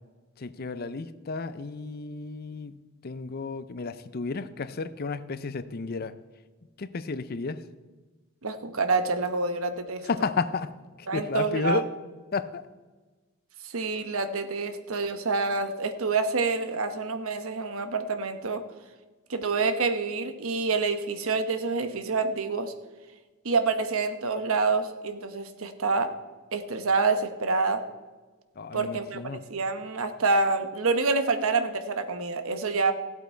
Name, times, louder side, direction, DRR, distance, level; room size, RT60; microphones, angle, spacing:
voice 1, 0.4-6.2 6.8-7.6 10.0-10.7 11.0-11.9 12.3-12.6 28.6-29.4, left 4 dB, 45° left, 13 dB, 0.5 m, -32 dB
voice 2, 8.4-10.1 11.1-11.8 13.6-18.6 19.3-22.7 23.4-26.1 26.5-27.8 28.7-29.2 29.5-32.9, right 4 dB, 70° right, 9 dB, 1.0 m, -27 dB
16.0 x 8.3 x 4.4 m, 1.3 s
head